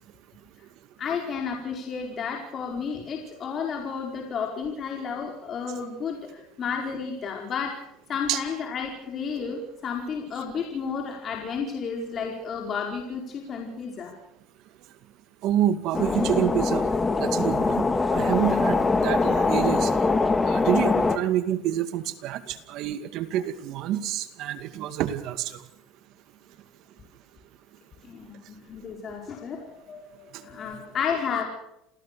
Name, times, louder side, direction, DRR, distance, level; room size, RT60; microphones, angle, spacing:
voice 1, 1.0-7.7 8.1-14.1 28.1-31.5, left 6 dB, 40° left, 1 dB, 4.8 m, -32 dB
voice 2, 15.4-16.9 17.2-17.9 18.1-25.5, right 11 dB, 60° right, 11 dB, 2.2 m, -27 dB
sound 1, 15.9-21.2, left 3 dB, 15° left, 1.8 m, -23 dB
28.0 x 16.5 x 6.9 m, 0.81 s
supercardioid pair, 110°, 0 cm